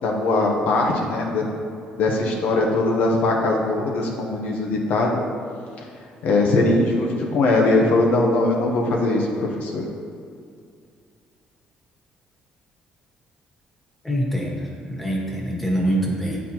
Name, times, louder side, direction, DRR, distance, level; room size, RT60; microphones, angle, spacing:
voice 1, 0.0-1.4 2.0-5.2 6.2-9.8, left 2 dB, 75° left, 0 dB, 0.8 m, -20 dB
voice 2, 14.0-16.4, right 1 dB, 5° left, -2 dB, 1.3 m, -24 dB
8.8 x 4.2 x 2.9 m, 2.3 s
cardioid pair, 100°, 3 cm